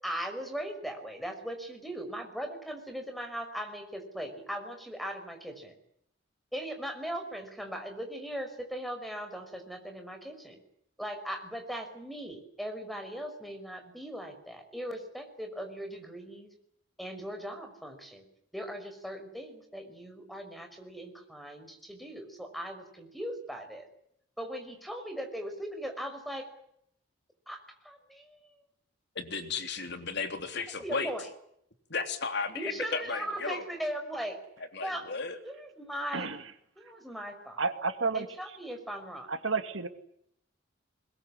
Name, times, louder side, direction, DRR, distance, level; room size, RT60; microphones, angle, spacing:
voice 1, 0.0-5.8 6.5-10.6 11.0-16.5 17.0-18.2 18.5-23.9 24.4-26.5 27.5-28.5 30.8-31.3 32.5-34.4 34.8-35.1 35.4-36.3 36.8-37.7 38.1-39.3, equal, ahead, 6 dB, 5.5 m, -39 dB
voice 2, 29.1-31.1 31.9-33.7 34.7-35.4, left 4 dB, 60° left, 7 dB, 3.3 m, -34 dB
voice 3, 37.6-38.3 39.3-39.9, right 4 dB, 85° right, 9 dB, 2.4 m, -30 dB
22.0 x 21.5 x 10.0 m, 0.73 s
head